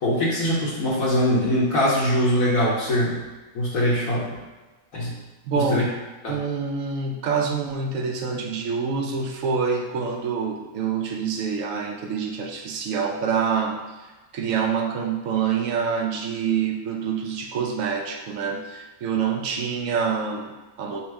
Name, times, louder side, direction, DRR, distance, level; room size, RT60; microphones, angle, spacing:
voice 1, 0.0-3.2 3.5-4.4 4.9-5.1 5.7-5.8 6.2-6.3, equal, 75° left, -6 dB, 1.4 m, -22 dB
voice 2, 5.4-5.9 6.3-21.0, right 6 dB, 70° right, 3 dB, 0.9 m, -26 dB
4.3 x 2.1 x 4.5 m, 1.2 s
omnidirectional pair, 1.5 m